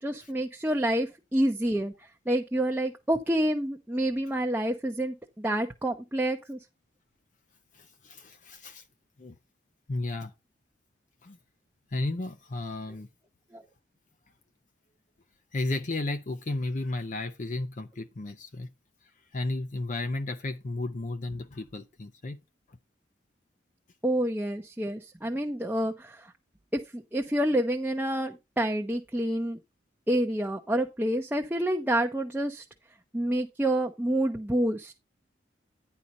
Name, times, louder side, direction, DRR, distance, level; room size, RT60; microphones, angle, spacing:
voice 1, 0.0-1.9 2.3-6.6 13.5-13.6 24.0-26.3 26.7-29.6 30.1-32.6 33.1-34.9, right 1 dB, 10° right, 0.7 m, -28 dB
voice 2, 7.7-8.8 9.2-9.3 9.9-10.3 11.2-11.4 11.9-13.1 15.5-18.7 19.3-22.4, left 2 dB, 45° left, 0.6 m, -33 dB
9.8 x 4.3 x 5.2 m
head